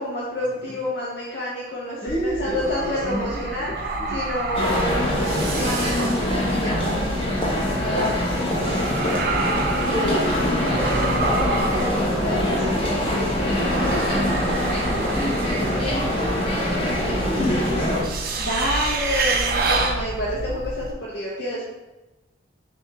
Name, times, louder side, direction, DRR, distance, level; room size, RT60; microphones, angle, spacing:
voice 1, 0.0-6.9 7.8-8.3 18.4-21.6, left 1 dB, 60° left, -6 dB, 0.7 m, -29 dB
voice 2, 2.0-4.2 10.3-14.3 14.8-18.0, equal, 45° left, -6 dB, 1.3 m, -32 dB
sound 1, 2.1-20.9, right 2 dB, 50° right, 0.4 m, -28 dB
sound 2, 4.5-18.0, left 1 dB, 30° left, 0.9 m, -24 dB
6.1 x 2.3 x 3.1 m, 1.1 s
head